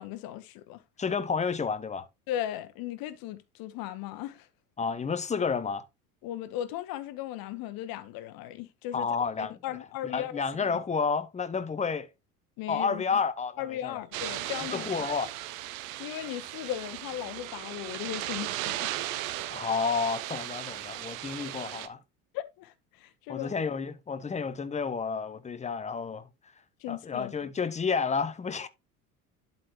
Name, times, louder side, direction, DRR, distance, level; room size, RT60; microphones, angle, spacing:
voice 1, 0.0-0.8 2.3-4.5 6.2-9.1 9.4-10.8 12.6-13.2 13.6-14.9 16.0-18.9 22.3-23.5 26.8-27.3, left 12 dB, 50° left, 1.1 m, -37 dB
voice 2, 1.0-2.1 4.8-5.8 8.9-9.6 10.1-12.1 12.7-14.0 14.7-15.3 19.5-22.0 23.3-26.3 26.9-28.7, left 5 dB, 15° left, 0.8 m, -30 dB
sound 1, 14.1-21.9, right 14 dB, 60° right, 0.8 m, -36 dB
11.5 x 4.2 x 2.9 m
figure-of-eight pair, 70°, 45 cm